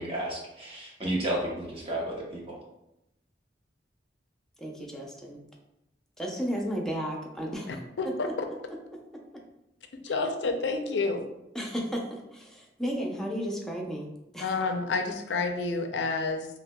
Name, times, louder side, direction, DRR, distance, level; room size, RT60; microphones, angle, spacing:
voice 1, 0.0-2.5, right 1 dB, 35° right, -4 dB, 0.9 m, -32 dB
voice 2, 4.6-5.4 6.2-7.8 11.5-14.1 14.3-14.6, equal, 5° left, -1 dB, 0.5 m, -33 dB
voice 3, 7.7-8.3 10.0-11.2 14.4-16.5, left 3 dB, 80° left, 5 dB, 0.5 m, -29 dB
5.6 x 2.1 x 2.2 m, 0.89 s
head